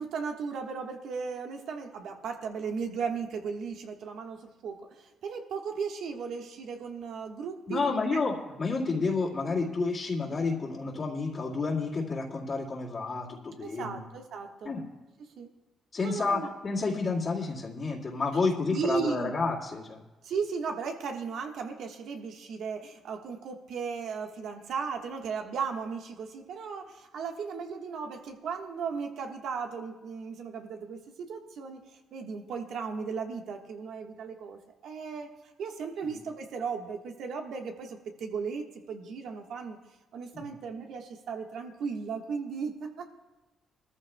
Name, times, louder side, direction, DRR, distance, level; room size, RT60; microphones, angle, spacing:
voice 1, 0.0-8.2 13.6-14.7 15.2-15.5 16.0-16.5 18.7-19.3 20.2-31.8 32.1-35.3 35.6-39.8 40.1-43.1, right 5 dB, 75° right, 3 dB, 1.4 m, -36 dB
voice 2, 7.7-14.0 14.6-14.8 15.9-20.0 36.0-36.1 40.3-40.4, left 4 dB, 40° left, -7 dB, 2.2 m, -30 dB
22.0 x 14.0 x 2.3 m, 1.1 s
cardioid pair, 90°, 0 cm